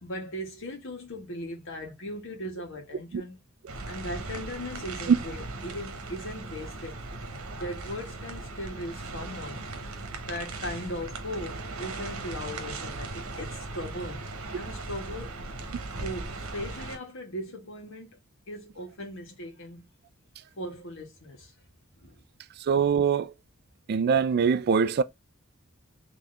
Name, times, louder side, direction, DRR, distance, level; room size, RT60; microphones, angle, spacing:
voice 1, 0.0-3.4 3.9-7.0 7.5-9.7 10.3-14.2 14.5-15.4 16.0-18.2 18.5-19.9 20.6-21.5 22.0-22.2, equal, 65° left, 1.4 m, -38 dB
sound 1, 3.7-17.0, right 3 dB, 80° right, 1.1 m, -38 dB
voice 2, 22.7-23.3 23.9-25.0, right 6 dB, 50° right, 0.3 m, -23 dB
4.0 x 2.9 x 3.2 m
head